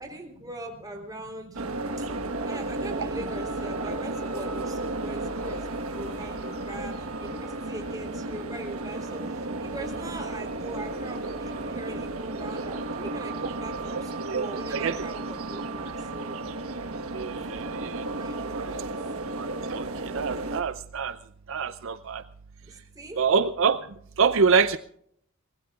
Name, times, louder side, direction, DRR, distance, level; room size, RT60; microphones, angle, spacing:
voice 1, 0.0-1.6 2.0-2.1 2.5-16.4 18.2-18.9 22.6-23.2, right 1 dB, 20° right, 2 dB, 3.5 m, -41 dB
sound 1, 1.5-20.6, right 2 dB, 85° right, 1.3 m, -33 dB
voice 2, 14.2-15.0 17.1-18.0 18.5-18.7 19.4-21.2 21.5-22.2 23.2-23.8 24.2-24.8, right 5 dB, 65° right, 12 dB, 0.5 m, -26 dB
24.0 x 19.5 x 2.4 m, 0.66 s
head